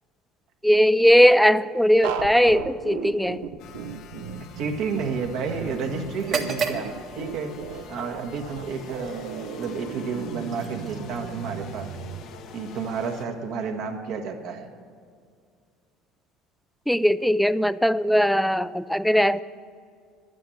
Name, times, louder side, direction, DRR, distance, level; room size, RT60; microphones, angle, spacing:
voice 1, 0.6-3.4 16.9-19.4, equal, ahead, 16 dB, 0.4 m, -19 dB
sound 1, 2.0-12.2, right 7 dB, 90° right, 0.8 m, -36 dB
sound 2, 3.6-13.3, left 7 dB, 65° left, 0.8 m, -45 dB
voice 2, 4.6-7.6 7.8-11.9 12.5-14.7, right 5 dB, 70° right, 3 dB, 1.5 m, -31 dB
sound 3, 6.1-14.0, right 5 dB, 50° right, 1.4 m, -37 dB
11.5 x 9.4 x 7.8 m, 2.2 s
supercardioid pair, 90°, 0 cm